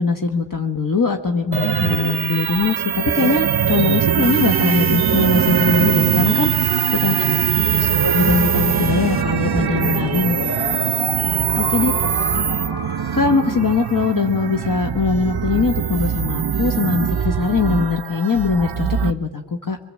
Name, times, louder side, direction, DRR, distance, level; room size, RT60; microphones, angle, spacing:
voice 1, 0.0-6.7 7.0-7.2 7.8-10.8 11.6-11.9 13.1-19.8, left 4 dB, 50° left, 5 dB, 1.4 m, -21 dB
sound 1, 1.5-19.1, right 9 dB, 60° right, 0.7 m, -21 dB
sound 2, 4.2-9.2, left 1 dB, 30° left, 1.7 m, -37 dB
voice 2, 6.8-8.0 11.8-12.8, left 3 dB, 5° left, 4 dB, 3.0 m, -44 dB
sound 3, 8.7-14.6, left 2 dB, 65° left, 3.4 m, -31 dB
24.5 x 23.5 x 7.6 m, 1.4 s
wide cardioid pair, 55°, 44 cm